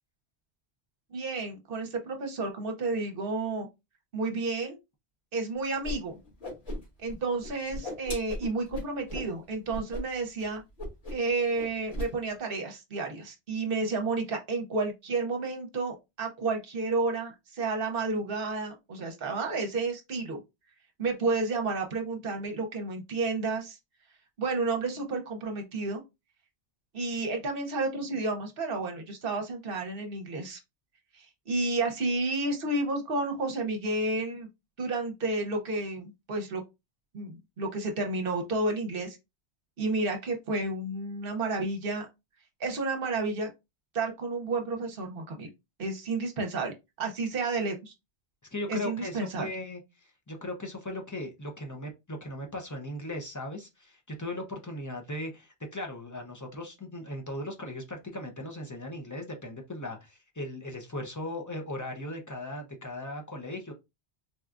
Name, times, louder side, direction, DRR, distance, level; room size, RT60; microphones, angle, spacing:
voice 1, 1.1-3.7 4.1-4.8 5.3-6.1 7.0-10.6 11.1-20.4 21.0-23.8 24.4-26.0 26.9-30.6 31.2-34.5 34.8-36.6 37.1-39.2 39.8-42.1 42.6-43.5 43.9-45.5 45.8-47.9 48.7-49.5, right 3 dB, 60° right, 0.9 m, -31 dB
Whoosh swoosh swish, 5.8-5.9 6.2-7.1 7.4-9.3 9.7-10.0 10.3-10.4 10.8-11.3 11.5-12.1, left 1 dB, 70° left, 2.1 m, -36 dB
voice 2, 48.5-63.7, left 1 dB, 25° left, 0.4 m, -38 dB
4.1 x 2.3 x 2.4 m
omnidirectional pair, 1.1 m